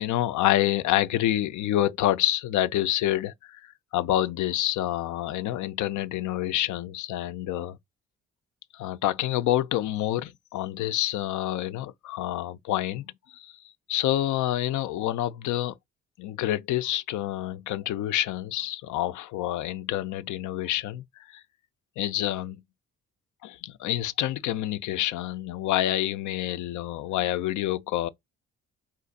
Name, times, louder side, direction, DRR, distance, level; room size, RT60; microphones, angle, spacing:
voice 1, 0.0-7.8 8.7-13.6 13.9-15.8 16.2-21.4 22.0-22.6 23.4-28.1, left 13 dB, 75° left, 0.5 m, -27 dB
4.3 x 2.5 x 3.9 m
cardioid pair, 90°, 30 cm